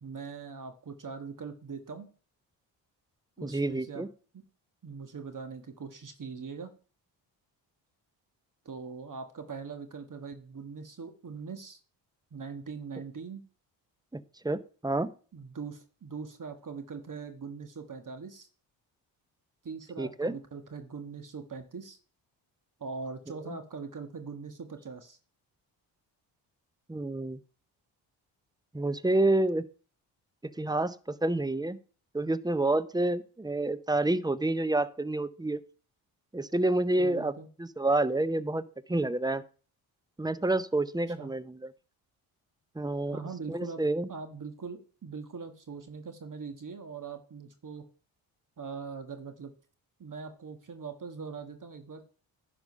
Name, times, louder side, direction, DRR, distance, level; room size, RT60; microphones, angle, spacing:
voice 1, 0.0-2.1 3.4-4.0 4.3-4.4 4.8-6.7 8.6-11.8 12.3-13.4 15.3-18.5 19.6-22.0 22.8-25.2 37.0-37.5 41.1-41.3 43.1-43.8 44.1-47.8 48.6-49.5 50.0-52.1, right 5 dB, 40° right, 7 dB, 1.4 m, -41 dB
voice 2, 3.4-4.1 14.1-15.1 20.0-20.3 23.5-23.6 26.9-27.4 28.7-29.6 30.6-31.8 32.1-35.6 36.3-37.3 37.6-38.6 38.9-39.4 40.2-41.6 42.8-43.2 43.5-44.1, right 2 dB, 10° right, 16 dB, 0.7 m, -28 dB
10.5 x 5.1 x 5.5 m, 0.39 s
supercardioid pair, 50°, 49 cm